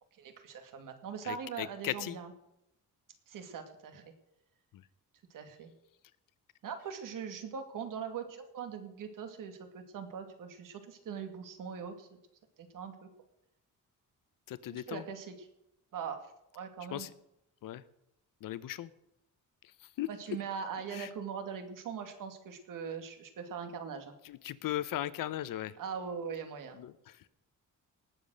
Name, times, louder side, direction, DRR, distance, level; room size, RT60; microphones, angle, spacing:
voice 1, 0.2-2.3 3.3-4.1 5.3-5.7 6.6-12.1 12.6-13.1 14.7-15.5 15.9-16.2 16.5-17.1 20.1-24.1 25.8-26.8, right 7 dB, 75° right, 7 dB, 2.4 m, -41 dB
voice 2, 1.2-2.2 14.5-15.0 16.9-17.1 17.6-17.8 18.4-18.9 20.0-20.1 20.9-21.1 24.2-25.7 26.8-26.9, left 13 dB, 85° left, 16 dB, 0.8 m, -37 dB
19.0 x 7.4 x 6.4 m, 0.85 s
cardioid pair, 130°, 32 cm